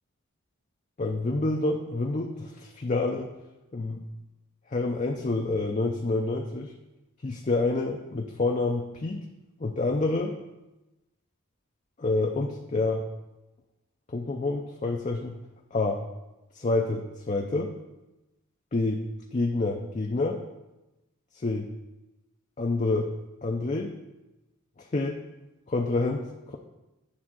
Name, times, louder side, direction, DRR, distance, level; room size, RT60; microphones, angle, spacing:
voice 1, 1.0-3.3 3.7-4.0 4.7-6.7 7.2-9.2 9.6-10.4 12.0-13.0 14.1-15.4 15.7-16.0 16.5-17.7 18.7-19.1 19.3-20.4 21.3-21.7 22.6-23.1 23.4-23.9 24.9-25.2 25.7-26.6, left 2 dB, 35° left, 1 dB, 0.5 m, -28 dB
9.4 x 3.6 x 6.0 m, 1.0 s
head